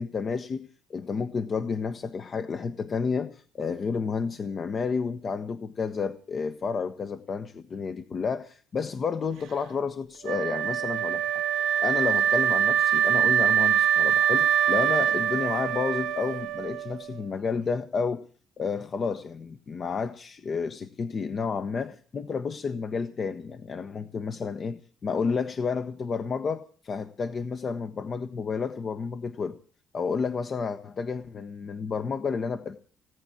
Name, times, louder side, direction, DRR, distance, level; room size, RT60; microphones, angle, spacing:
voice 1, 0.0-11.2 11.8-18.2 18.6-29.6 29.9-32.8, left 5 dB, 45° left, 9 dB, 1.1 m, -31 dB
Wind instrument woodwind instrument, 10.2-17.2, right 9 dB, 75° right, 0.8 m, -24 dB
17.5 x 9.3 x 8.7 m, 0.42 s
hypercardioid pair, 60°, 0 cm